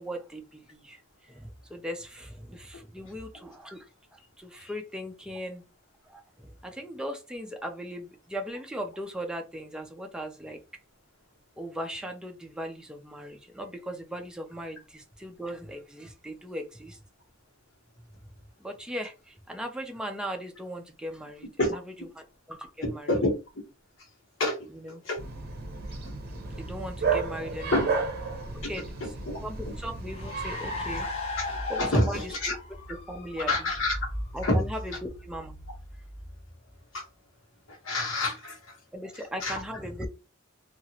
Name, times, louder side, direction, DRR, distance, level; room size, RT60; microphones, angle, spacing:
voice 1, 0.0-5.6 6.0-10.6 11.6-17.0 18.6-21.8 22.2-23.1 24.7-25.0 26.6-28.0 28.5-28.9 29.4-31.1 31.7-32.3 32.9-33.7 34.3-35.6 38.9-40.1, equal, 5° right, 0.4 m, -38 dB
voice 2, 22.8-23.4 24.4-24.7 25.0-25.2 27.7-27.9 28.6-28.7 29.0-29.4 31.4-31.5 31.8-32.6 33.4-34.0 34.4-34.6 36.9-37.0 37.7-38.8 39.4-39.6, left 1 dB, 75° left, 1.1 m, -27 dB
Bark, 25.2-31.0, right 4 dB, 50° right, 0.7 m, -33 dB
Car, 29.1-36.8, left 2 dB, 35° left, 0.9 m, -38 dB
2.9 x 2.4 x 2.8 m
head